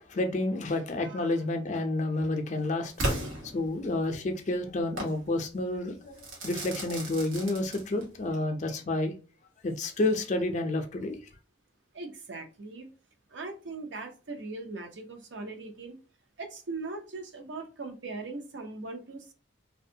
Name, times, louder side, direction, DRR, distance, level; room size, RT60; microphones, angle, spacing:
voice 1, 0.0-2.9 3.5-6.2 6.4-9.1 9.6-11.2, left 2 dB, 35° left, 0.4 m, -30 dB
voice 2, 1.0-1.3 11.9-12.9 13.3-15.9 16.4-19.3, right 3 dB, 65° right, 0.6 m, -40 dB
Crackle / Fireworks, 3.0-4.1 5.0-5.2 6.2-8.2, right 1 dB, 90° right, 1.0 m, -34 dB
2.5 x 2.3 x 2.7 m
head